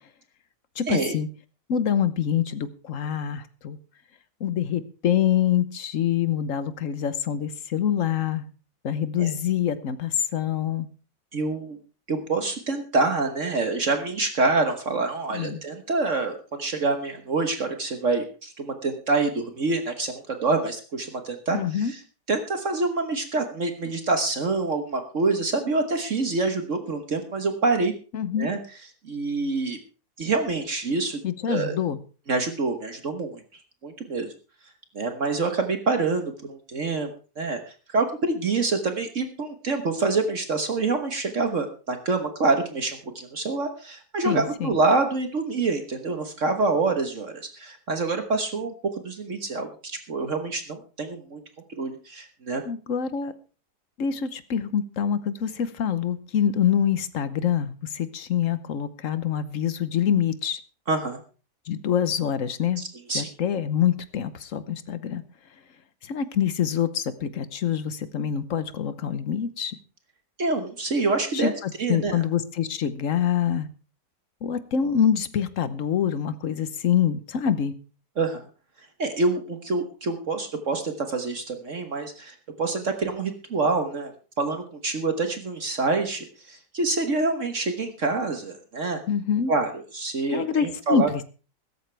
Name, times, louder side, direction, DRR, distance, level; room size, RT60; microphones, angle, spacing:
voice 1, 0.8-1.3 1.7-3.8 4.4-8.5 8.8-10.9 15.3-15.6 21.5-21.9 28.1-28.5 31.2-32.0 44.2-44.7 52.6-53.3 54.0-60.6 61.7-62.8 63.1-65.2 66.0-69.8 71.3-73.7 74.4-77.7 89.1-89.5 90.3-91.2, left 8 dB, 55° left, 13 dB, 1.2 m, -25 dB
voice 2, 11.3-11.8 12.1-22.0 22.3-27.9 28.4-28.6 29.0-29.8 30.2-31.2 31.5-31.7 32.3-33.4 33.8-34.3 34.9-37.6 37.9-51.4 51.8-52.6 60.9-61.2 62.8-63.3 70.4-71.5 71.8-72.2 78.2-78.4 79.0-84.1 84.4-89.0 89.5-91.1, right 3 dB, 50° right, 6 dB, 1.5 m, -26 dB
16.0 x 13.5 x 3.4 m, 0.36 s
omnidirectional pair, 1.8 m